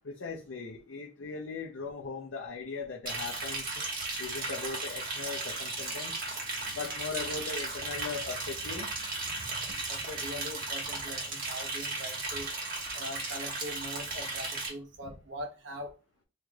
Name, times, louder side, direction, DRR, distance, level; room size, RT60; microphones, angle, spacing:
voice 1, 0.0-3.8 4.2-6.2 6.7-8.9, left 4 dB, 75° left, 0.6 m, -39 dB
Liquid, 3.1-14.7, right 3 dB, 50° right, 1.1 m, -36 dB
voice 2, 9.7-12.5 12.9-15.9, equal, 70° right, 0.9 m, -42 dB
3.7 x 3.2 x 2.3 m
head